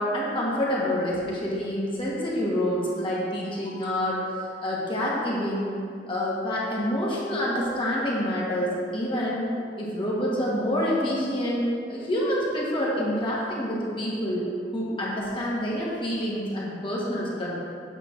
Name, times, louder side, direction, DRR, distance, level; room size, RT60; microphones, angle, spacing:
voice 1, 0.0-4.2 4.6-5.7 6.1-9.5 9.8-17.5, equal, 30° left, -6 dB, 1.2 m, -27 dB
8.3 x 3.3 x 5.7 m, 2.3 s
head